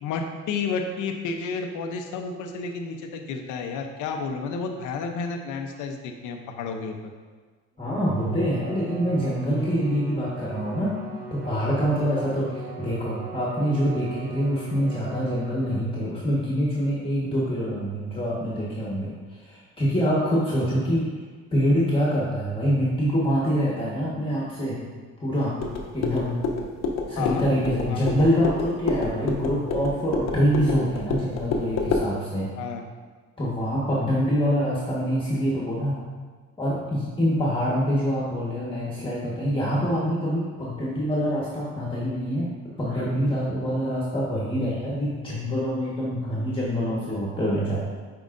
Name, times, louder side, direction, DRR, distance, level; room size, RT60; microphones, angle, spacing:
voice 1, 0.0-7.1 27.2-27.4 27.9-28.0 32.6-32.8, left 5 dB, 90° left, 4 dB, 0.8 m, -31 dB
voice 2, 7.8-11.0 11.3-21.1 21.5-24.8 25.2-25.6 25.9-26.4 27.1-32.5 33.4-36.0 36.6-42.5 42.8-47.9, equal, 15° left, -6 dB, 1.4 m, -25 dB
Bowed string instrument, 7.9-16.2, right 5 dB, 30° right, 1.9 m, -39 dB
sound 1, 25.6-32.1, left 3 dB, 60° left, 0.9 m, -28 dB
9.1 x 4.7 x 2.6 m, 1.4 s
cardioid pair, 115°, 30 cm